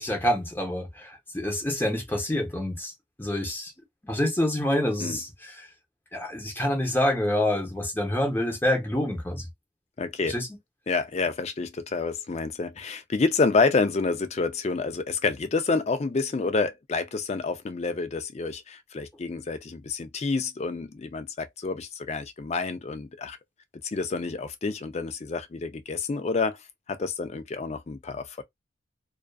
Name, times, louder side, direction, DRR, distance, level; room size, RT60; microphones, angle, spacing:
voice 1, 0.0-2.9 3.2-3.7 4.0-5.7 6.1-9.5 10.2-10.5, left 1 dB, 10° left, 0.7 m, -27 dB
voice 2, 10.0-10.3 10.9-23.4 23.8-26.6 26.9-28.4, left 4 dB, 30° left, 0.4 m, -28 dB
2.4 x 2.3 x 2.3 m
head